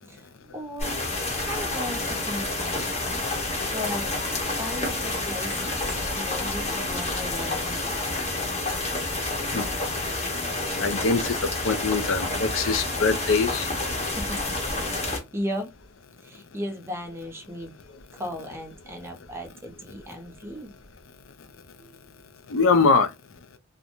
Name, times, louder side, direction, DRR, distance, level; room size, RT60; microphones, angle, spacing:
voice 1, 0.0-4.1 4.6-5.8 6.2-8.2 14.0-15.7 16.2-17.7 18.1-20.7 21.5-22.0, equal, 10° right, 0.6 m, -37 dB
sound 1, 0.8-15.2, left 2 dB, 30° left, 0.9 m, -29 dB
voice 2, 10.8-13.7 22.5-23.1, left 4 dB, 65° left, 0.5 m, -23 dB
2.5 x 2.1 x 2.9 m
head